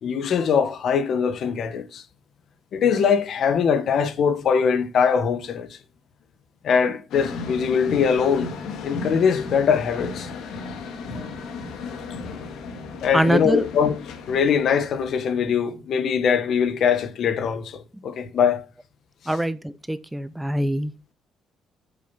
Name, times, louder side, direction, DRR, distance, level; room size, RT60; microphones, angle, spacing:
voice 1, 0.0-2.0 2.7-5.8 6.6-8.5 8.8-10.3 13.0-13.9 14.3-18.7, left 7 dB, 50° left, 1.3 m, -22 dB
sound 1, 7.1-15.4, left 4 dB, 70° left, 2.1 m, -35 dB
voice 2, 13.1-13.7 19.3-20.9, right 1 dB, 5° right, 0.4 m, -23 dB
7.8 x 6.8 x 5.7 m
cardioid pair, 155°, 0 cm